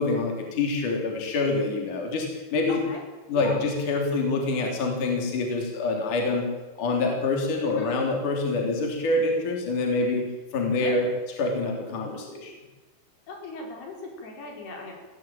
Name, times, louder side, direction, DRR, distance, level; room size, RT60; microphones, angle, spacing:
voice 1, 0.0-2.8 3.3-6.5 6.8-10.3 10.5-11.1 11.4-12.5, left 3 dB, 50° left, 1 dB, 4.8 m, -26 dB
voice 2, 2.7-3.0 3.3-3.6 7.7-7.9 10.7-10.9 13.3-14.9, left 3 dB, 75° left, 1 dB, 6.4 m, -38 dB
23.0 x 16.5 x 9.1 m, 1.2 s
omnidirectional pair, 4.6 m